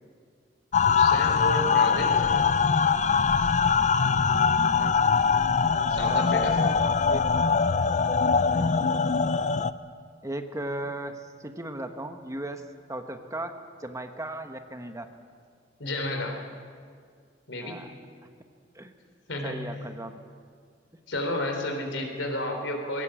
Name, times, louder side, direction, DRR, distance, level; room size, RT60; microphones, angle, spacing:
sound 1, 0.7-9.7, left 5 dB, 40° left, 0.5 m, -22 dB
voice 1, 0.9-2.4 5.9-6.7 15.8-16.4 17.5-17.9 19.3-19.8 21.1-23.0, left 1 dB, 85° left, 3 dB, 3.6 m, -31 dB
voice 2, 4.5-5.2 6.0-7.2 8.5-8.9 10.2-12.6 12.9-13.5 13.8-15.1 17.6-17.9 18.7-18.9 19.4-20.2, right 1 dB, 15° right, 6 dB, 1.2 m, -37 dB
20.5 x 17.0 x 7.6 m, 2.1 s
head